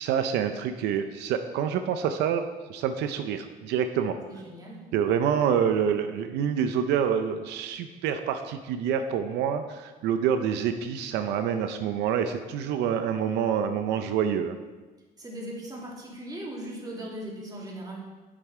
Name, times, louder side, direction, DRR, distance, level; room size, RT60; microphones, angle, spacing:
voice 1, 0.0-2.4 2.7-4.2 4.9-14.6, right 8 dB, 85° right, 8 dB, 0.6 m, -27 dB
voice 2, 4.3-4.9 15.2-18.0, right 1 dB, 20° right, -3 dB, 2.6 m, -39 dB
8.0 x 7.5 x 4.9 m, 1.3 s
cardioid pair, 110°, 17 cm